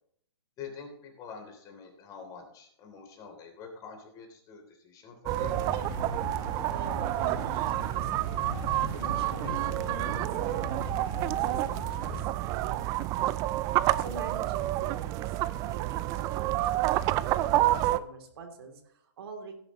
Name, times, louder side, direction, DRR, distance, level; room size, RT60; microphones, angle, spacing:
voice 1, 0.6-5.5, left 5 dB, 25° left, 3 dB, 3.3 m, -46 dB
sound 1, 5.3-12.3, left 6 dB, 50° left, 1.7 m, -41 dB
sound 2, 5.3-18.0, right 15 dB, 25° right, 0.4 m, -29 dB
voice 2, 6.7-13.5 14.0-19.6, right 4 dB, 60° right, 4 dB, 3.2 m, -46 dB
17.5 x 10.5 x 3.1 m, 0.68 s
hypercardioid pair, 135°, 15 cm